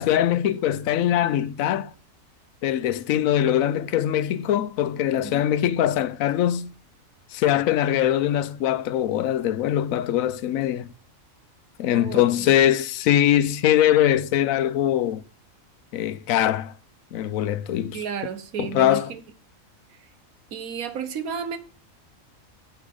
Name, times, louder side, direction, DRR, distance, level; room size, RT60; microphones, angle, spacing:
voice 1, 0.0-1.9 2.6-6.7 7.3-10.9 11.8-15.2 15.9-16.7 17.1-18.0 18.6-19.1, left 11 dB, 75° left, 1.0 m, -22 dB
voice 2, 5.2-5.5 11.9-12.6 17.9-19.2 19.9-20.1 20.5-21.6, right 7 dB, 85° right, 1.4 m, -33 dB
9.7 x 7.8 x 3.8 m
omnidirectional pair, 1.5 m